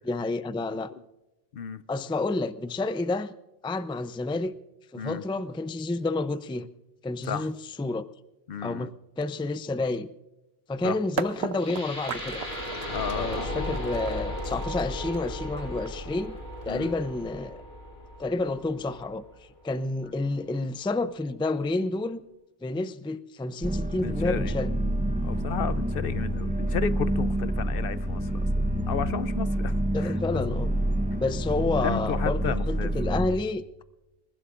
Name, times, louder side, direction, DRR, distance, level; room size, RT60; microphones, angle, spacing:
voice 1, 0.0-0.9 1.9-3.3 3.6-4.5 4.9-6.7 7.0-8.1 8.6-10.1 10.7-12.4 13.1-16.4 16.6-17.6 18.2-19.2 19.6-22.2 22.6-24.7 29.9-30.7 31.2-33.8, left 2 dB, 5° left, 0.4 m, -29 dB
voice 2, 8.5-8.9 10.8-11.0 12.9-13.5 16.7-16.9 24.0-24.6 25.2-28.3 28.9-30.5 31.8-32.9, left 7 dB, 65° left, 0.8 m, -33 dB
sound 1, 11.2-17.0, right 7 dB, 90° right, 1.0 m, -37 dB
sound 2, 11.6-19.6, left 1 dB, 90° left, 5.8 m, -36 dB
sound 3, 23.6-33.3, right 1 dB, 10° right, 0.9 m, -28 dB
27.5 x 15.5 x 2.5 m
omnidirectional pair, 1.0 m